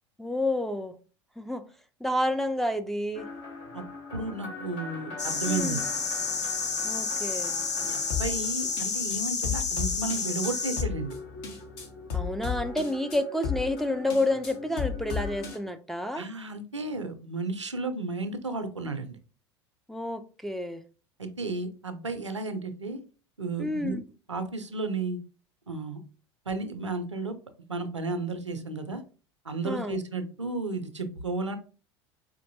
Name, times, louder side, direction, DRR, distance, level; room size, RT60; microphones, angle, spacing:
voice 1, 0.2-0.9 1.4-1.6 2.0-3.3 5.5-5.8 6.8-7.5 12.1-16.2 19.9-20.8 23.6-24.0 29.6-30.0, left 1 dB, ahead, 0.3 m, -29 dB
sound 1, 3.2-15.6, left 6 dB, 55° left, 1.0 m, -36 dB
voice 2, 4.1-5.8 6.4-6.5 7.8-11.1 16.1-19.2 21.2-23.0 23.4-24.0 24.3-25.2 25.7-26.0 26.5-27.3 27.7-29.0 29.4-31.6, right 3 dB, 90° right, 0.4 m, -33 dB
sound 2, 5.2-10.8, left 5 dB, 80° left, 0.6 m, -30 dB
4.3 x 2.5 x 2.7 m
figure-of-eight pair, 75°, 15 cm